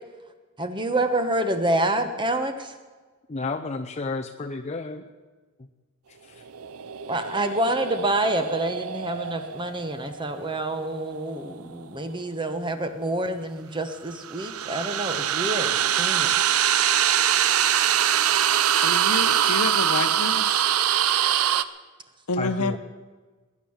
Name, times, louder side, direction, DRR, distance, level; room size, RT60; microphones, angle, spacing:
voice 1, 0.6-2.8 7.1-16.3, right 1 dB, 20° right, 8 dB, 1.2 m, -27 dB
voice 2, 3.3-5.0 5.6-5.7 6.1-6.4 22.4-22.8, left 3 dB, 30° left, 5 dB, 0.6 m, -32 dB
sound 1, 6.5-11.7 14.1-21.6, right 10 dB, 80° right, 0.6 m, -24 dB
voice 3, 18.8-20.7 22.3-22.8, left 3 dB, 80° left, 11 dB, 1.0 m, -29 dB
19.5 x 9.6 x 7.3 m, 1.4 s
head